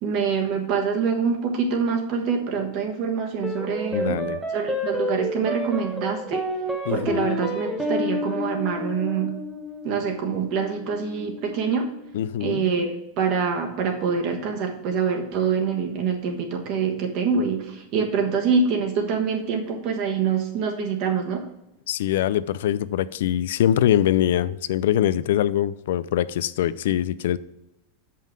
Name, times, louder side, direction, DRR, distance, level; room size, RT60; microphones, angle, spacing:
voice 1, 0.0-4.3 4.5-6.4 6.9-9.3 9.8-11.9 12.4-21.4, right 5 dB, 40° right, 1.3 m, -25 dB
sound 1, 3.4-12.0, left 1 dB, ahead, 0.9 m, -30 dB
voice 2, 3.9-4.4 6.8-7.3 12.1-12.7 21.9-27.4, left 11 dB, 75° left, 0.3 m, -23 dB
7.3 x 5.6 x 5.1 m
supercardioid pair, 165°, 0 cm